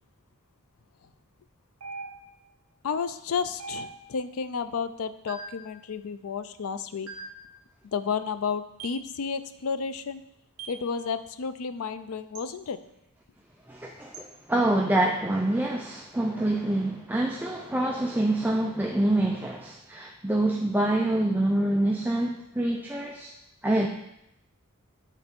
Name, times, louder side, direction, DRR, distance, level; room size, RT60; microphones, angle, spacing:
sound 1, 1.8-2.5 3.6-4.3 5.3-5.7 7.1-7.5 8.8-9.1 10.6-10.9 12.3-12.5 14.1-14.3, right 3 dB, 80° right, 1.0 m, -41 dB
voice 1, 2.8-7.1 7.9-10.2 10.7-12.8, left 6 dB, 85° left, 12 dB, 0.5 m, -32 dB
voice 2, 13.7-23.3 23.6-23.9, right 1 dB, 10° right, 0 dB, 0.4 m, -26 dB
8.4 x 4.3 x 5.2 m, 0.83 s
head